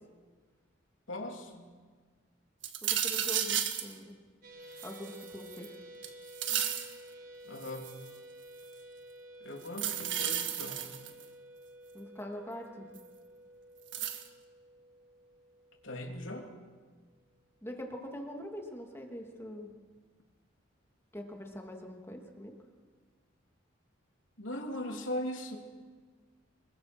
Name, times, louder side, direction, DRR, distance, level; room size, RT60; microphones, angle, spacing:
voice 1, 1.1-1.7 7.4-7.9 9.4-10.8 15.8-16.5 24.4-25.6, left 1 dB, 85° left, 2 dB, 3.3 m, -39 dB
sound 1, 2.6-3.9 4.8-5.7 6.0-6.9 7.6-8.1 9.7-11.2 13.0-13.1 13.9-14.3, right 10 dB, 70° right, 1.8 m, -33 dB
voice 2, 2.8-4.2 4.8-5.7 11.9-12.9 17.6-19.7 21.1-22.5, left 1 dB, 15° left, 2 dB, 2.8 m, -43 dB
sound 2, 4.4-16.8, right 1 dB, 50° right, 5.9 m, -52 dB
26.0 x 22.5 x 6.3 m, 1.5 s
head